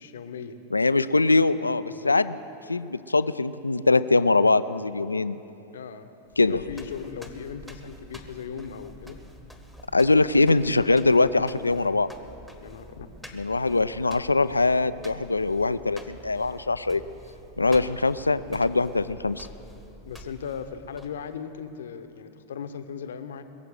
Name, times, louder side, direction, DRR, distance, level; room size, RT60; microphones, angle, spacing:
voice 1, 0.0-0.6 1.8-2.1 5.7-6.1 6.4-9.2 12.6-13.1 20.0-23.4, left 7 dB, 65° left, 10 dB, 0.9 m, -38 dB
voice 2, 0.7-2.4 2.7-5.4 6.4-6.6 9.9-12.1 13.3-17.0 17.6-19.5, left 3 dB, 80° left, 14 dB, 0.4 m, -22 dB
sound 1, 6.3-21.4, left 1 dB, ahead, 1.3 m, -47 dB
21.5 x 7.5 x 7.9 m, 2.9 s
figure-of-eight pair, 90°, 0 cm